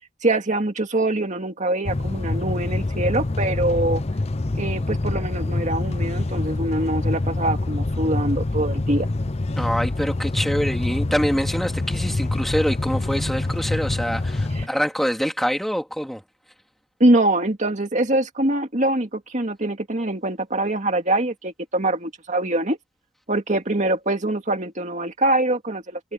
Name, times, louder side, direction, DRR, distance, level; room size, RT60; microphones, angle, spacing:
voice 1, 0.2-4.0 4.6-9.1 14.5-14.7 17.0-22.8 23.3-26.1, right 1 dB, 35° right, 2.2 m, -23 dB
sound 1, 1.8-14.7, left 2 dB, 30° left, 0.6 m, -25 dB
voice 2, 9.6-16.2, equal, ahead, 2.7 m, -25 dB
head